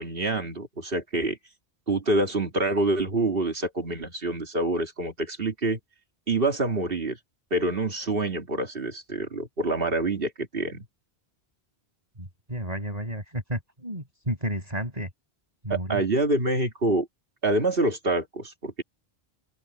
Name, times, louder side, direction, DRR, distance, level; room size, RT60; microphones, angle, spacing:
voice 1, 0.0-1.4 1.9-5.8 6.3-7.2 7.5-10.8 15.7-17.1 17.4-18.8, right 2 dB, 60° right, 2.7 m, -26 dB
voice 2, 12.2-15.1 15.6-16.0, right 1 dB, 40° right, 7.2 m, -32 dB
open air
omnidirectional pair, 1.1 m